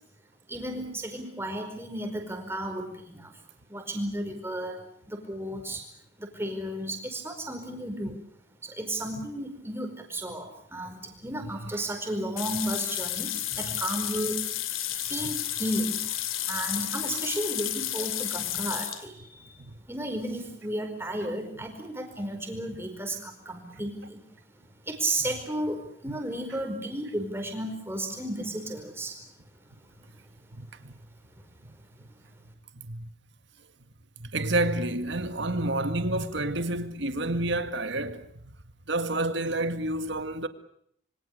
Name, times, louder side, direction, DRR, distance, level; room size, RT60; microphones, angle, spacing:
voice 1, 0.5-3.3 3.7-4.8 5.1-5.9 6.2-8.2 8.6-14.4 15.0-16.1 16.4-19.6 19.9-24.2 24.8-29.2, right 1 dB, 10° right, 4.8 m, -33 dB
sound 1, 12.4-19.0, left 12 dB, 80° left, 2.7 m, -32 dB
voice 2, 30.5-30.9 32.8-33.1 34.2-38.3 38.9-40.5, right 2 dB, 60° right, 2.0 m, -29 dB
27.0 x 24.5 x 6.7 m
head